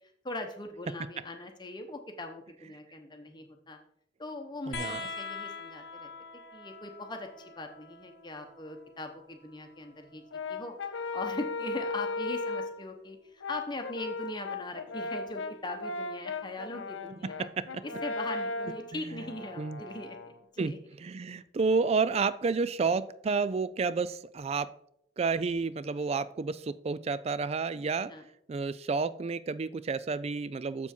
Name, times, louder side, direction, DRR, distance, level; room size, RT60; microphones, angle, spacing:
voice 1, 0.2-3.8 4.2-6.1 6.5-10.2 10.5-10.7 11.1-17.5 17.8-20.8 28.0-28.2, left 2 dB, 25° left, 4 dB, 0.9 m, -40 dB
sound 1, 4.7-11.8 13.2-14.0 15.3-15.4, left 4 dB, 60° left, 1.0 m, -45 dB
voice 2, 4.7-5.0 17.6-17.8 18.9-19.0 19.6-19.8 20.6-24.7 25.2-28.1 28.5-30.9, right 4 dB, 35° right, 17 dB, 0.3 m, -30 dB
Brass instrument, 10.3-12.8 13.4-20.4, left 3 dB, 85° left, 0.6 m, -37 dB
6.9 x 6.9 x 4.4 m, 0.73 s
head